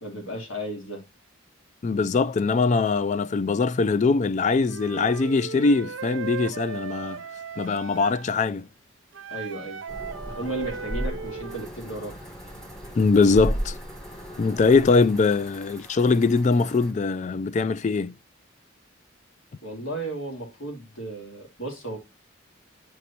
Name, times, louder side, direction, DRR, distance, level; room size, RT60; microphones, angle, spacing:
voice 1, 0.0-1.0 9.3-9.8 10.3-12.2 19.6-22.0, right 1 dB, 75° left, 2.8 m, -34 dB
voice 2, 1.8-7.2 7.6-8.7 13.0-13.8 14.4-18.2, left 4 dB, 35° left, 0.3 m, -22 dB
Wind instrument woodwind instrument, 4.7-8.3 9.1-11.7, right 6 dB, 75° right, 0.6 m, -37 dB
sound 1, 9.9-15.0, equal, 20° left, 1.3 m, -34 dB
sound 2, 11.5-16.9, right 1 dB, 5° left, 1.4 m, -49 dB
9.5 x 5.1 x 2.8 m
head